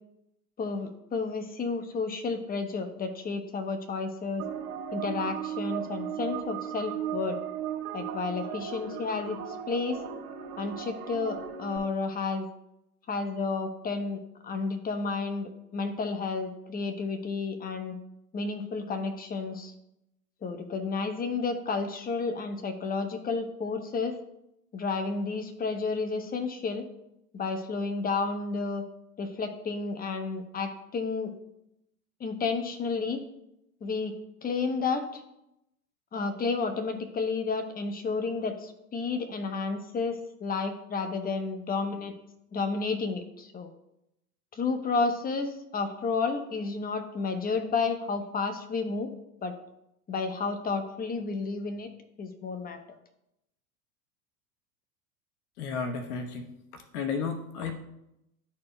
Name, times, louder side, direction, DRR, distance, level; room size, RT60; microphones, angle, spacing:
voice 1, 0.6-4.4 4.9-7.4 7.9-10.0 10.6-12.5 13.1-17.9 18.3-19.7 20.4-24.2 24.7-26.8 27.3-28.9 29.2-31.3 32.2-33.2 33.8-34.1 34.4-35.2 36.1-42.2 42.5-43.7 44.5-49.1 49.4-49.6 50.1-51.9 52.2-53.0, left 4 dB, 20° left, 7 dB, 0.9 m, -31 dB
sound 1, 4.4-11.8, right 9 dB, 65° right, 1.5 m, -36 dB
voice 2, 55.6-56.5 56.9-57.7, left 5 dB, 70° left, 5 dB, 1.1 m, -32 dB
11.5 x 4.3 x 2.2 m, 0.83 s
hypercardioid pair, 95°, 46 cm